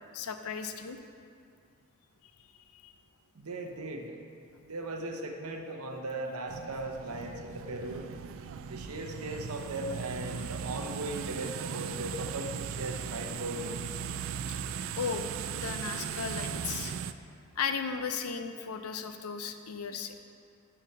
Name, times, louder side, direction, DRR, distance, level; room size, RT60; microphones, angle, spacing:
voice 1, 0.1-1.0 2.7-2.9 15.0-16.9 17.6-20.1, left 6 dB, 80° left, 8 dB, 0.5 m, -35 dB
voice 2, 3.3-4.2 4.6-8.0 8.7-13.8, right 2 dB, 80° right, 3 dB, 0.9 m, -38 dB
sound 1, 6.5-17.1, right 7 dB, 60° right, 0.3 m, -38 dB
6.2 x 5.9 x 6.6 m, 2.3 s
head